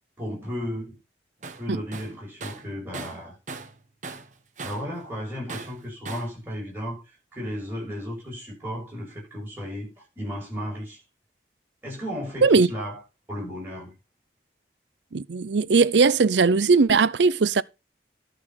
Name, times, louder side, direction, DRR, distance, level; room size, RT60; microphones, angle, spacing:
voice 1, 0.2-1.0 1.6-3.4 4.6-11.0 11.8-13.0 13.3-13.9, equal, 10° right, 6.9 m, -34 dB
Tools, 1.4-1.6 1.9-3.8 4.0-4.9 5.5-6.4, right 3 dB, 45° right, 1.1 m, -38 dB
voice 2, 15.1-17.6, right 4 dB, 85° right, 0.6 m, -19 dB
12.0 x 6.3 x 5.6 m
head